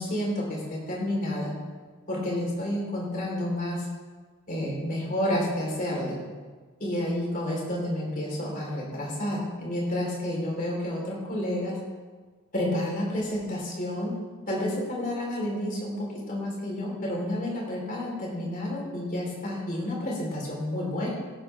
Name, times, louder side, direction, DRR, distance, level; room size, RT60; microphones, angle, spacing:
voice 1, 0.0-1.5 2.1-3.9 4.5-6.2 6.8-11.8 12.5-14.2 14.5-21.1, left 1 dB, 40° left, -3 dB, 4.4 m, -30 dB
16.5 x 12.0 x 3.7 m, 1.4 s
head